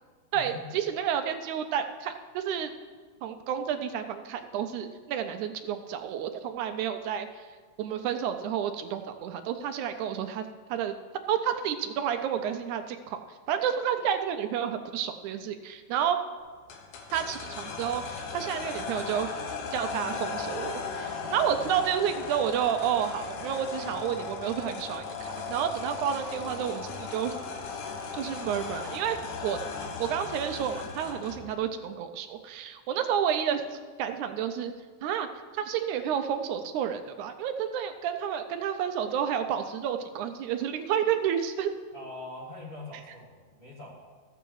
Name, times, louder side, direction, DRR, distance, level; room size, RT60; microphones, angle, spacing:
voice 1, 0.3-2.7 3.2-7.3 7.8-10.9 11.3-13.2 13.5-16.2 17.1-19.3 19.7-27.4 28.1-29.6 30.0-33.7 34.0-34.7 35.0-35.3 35.5-41.7, right 9 dB, 85° right, 8 dB, 2.0 m, -30 dB
sound 1, 16.7-31.5, left 5 dB, 85° left, 2.6 m, -37 dB
voice 2, 41.9-44.0, left 2 dB, 35° left, -4 dB, 1.6 m, -43 dB
13.5 x 7.9 x 4.7 m, 1.5 s
omnidirectional pair, 3.5 m